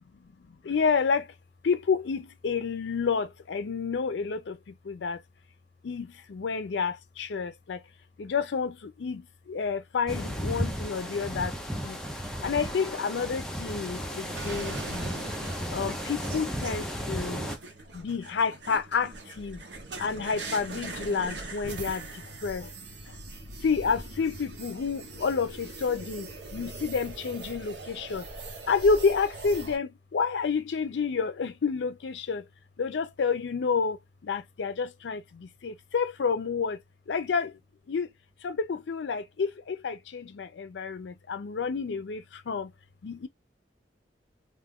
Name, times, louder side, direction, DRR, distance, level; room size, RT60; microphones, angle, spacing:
voice 1, 0.5-1.3 1.6-5.2 5.8-7.8 8.2-11.6 11.8-12.0 12.4-15.1 15.7-17.4 17.9-19.6 20.0-22.1 22.4-22.7 23.1-23.2 23.6-28.2 28.7-32.4 32.8-36.8 37.1-37.6 37.9-38.1 38.4-42.7 43.0-43.3, left 5 dB, 90° left, 0.4 m, -29 dB
sound 1, 10.1-17.6, equal, 5° left, 0.5 m, -34 dB
sound 2, 14.3-29.8, right 3 dB, 80° right, 0.9 m, -41 dB
2.5 x 2.4 x 3.5 m
head